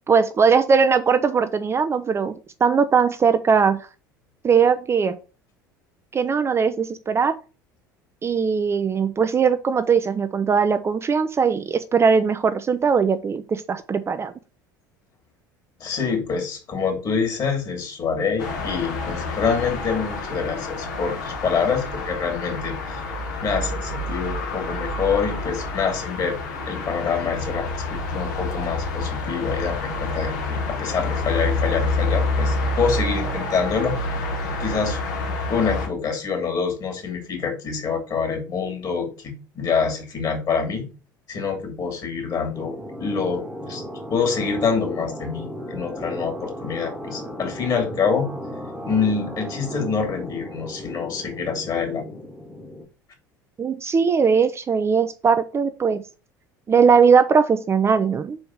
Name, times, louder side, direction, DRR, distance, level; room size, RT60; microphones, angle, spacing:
voice 1, 0.1-2.3 2.6-3.8 4.4-5.2 6.1-7.3 8.2-14.3 53.6-56.0 56.7-58.4, right 6 dB, 25° right, 9 dB, 0.6 m, -19 dB
voice 2, 15.8-23.0 23.4-26.4 26.7-33.9 34.6-35.0 35.5-40.9 41.3-42.7 43.0-43.8 44.1-48.3 48.8-52.0, left 5 dB, 35° left, 2 dB, 2.8 m, -26 dB
sound 1, 18.4-35.9, left 2 dB, 65° left, 1.6 m, -28 dB
sound 2, 42.5-52.9, equal, 5° right, 1.3 m, -35 dB
5.2 x 4.7 x 6.2 m, 0.34 s
figure-of-eight pair, 65°, 11 cm